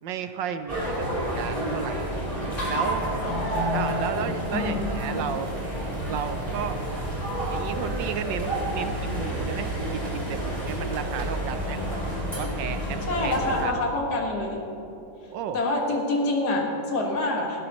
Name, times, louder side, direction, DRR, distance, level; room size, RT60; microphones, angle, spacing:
voice 1, 0.0-2.0 2.7-3.0 3.7-5.5 6.1-6.9 7.5-12.0 12.3-13.7 15.3-15.6, right 8 dB, 70° right, 9 dB, 1.3 m, -33 dB
sound 1, 0.7-13.6, right 1 dB, 20° left, 3.8 m, -29 dB
voice 2, 3.2-4.1 4.5-5.3 13.1-14.6 15.5-17.6, left 2 dB, 55° left, 0 dB, 2.3 m, -27 dB
18.5 x 14.5 x 3.0 m, 2.8 s
omnidirectional pair, 2.2 m